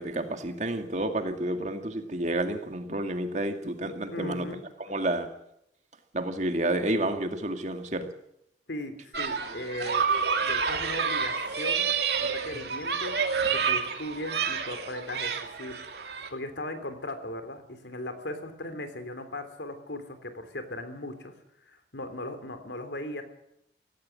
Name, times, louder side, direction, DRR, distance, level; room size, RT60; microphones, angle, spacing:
voice 1, 0.0-4.5 4.8-5.3 6.1-8.1, right 1 dB, 40° right, 6 dB, 2.2 m, -30 dB
voice 2, 4.1-4.6 8.7-10.0 10.4-11.9 12.2-13.1 13.5-15.8 16.3-21.3 21.7-23.2, left 1 dB, 80° left, 9 dB, 3.5 m, -38 dB
sound 1, 9.1-16.3, right 6 dB, 65° right, 2.4 m, -29 dB
17.0 x 16.5 x 9.8 m, 0.77 s
head